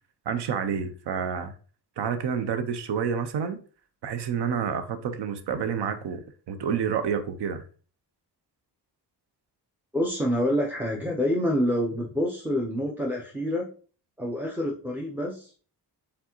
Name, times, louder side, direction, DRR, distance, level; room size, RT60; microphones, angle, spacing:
voice 1, 0.3-1.5 2.0-3.6 4.0-6.2 6.5-7.6, right 7 dB, 75° right, 0.6 m, -29 dB
voice 2, 9.9-13.7 14.2-15.6, equal, 5° right, 0.5 m, -27 dB
4.6 x 3.5 x 2.9 m
wide cardioid pair, 125°, 41 cm